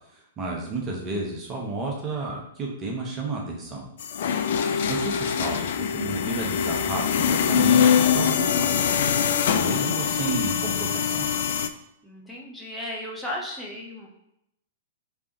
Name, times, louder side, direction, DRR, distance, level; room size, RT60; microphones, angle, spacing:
voice 1, 0.1-3.9 4.9-8.7 9.5-11.3, right 3 dB, 25° right, -1 dB, 0.8 m, -32 dB
sound 1, 4.0-11.7, left 7 dB, 55° left, 0.3 m, -23 dB
voice 2, 12.0-14.1, left 1 dB, 5° left, -4 dB, 0.9 m, -36 dB
3.5 x 3.5 x 3.8 m, 0.81 s
figure-of-eight pair, 105°, 0 cm